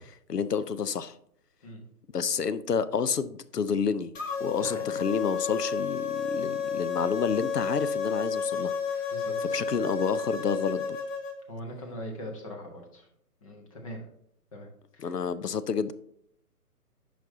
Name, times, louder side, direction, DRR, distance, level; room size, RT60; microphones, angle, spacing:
voice 1, 0.3-1.1 2.1-4.1 4.4-8.7 9.5-11.0 15.0-15.9, left 6 dB, 80° left, 0.7 m, -29 dB
sound 1, 4.1-11.3, left 6 dB, 55° left, 1.4 m, -31 dB
voice 2, 9.1-9.6 11.5-13.1 13.4-14.0 14.5-14.7 14.9-15.1, equal, 20° left, 1.0 m, -41 dB
8.8 x 5.2 x 2.7 m
figure-of-eight pair, 140°, 47 cm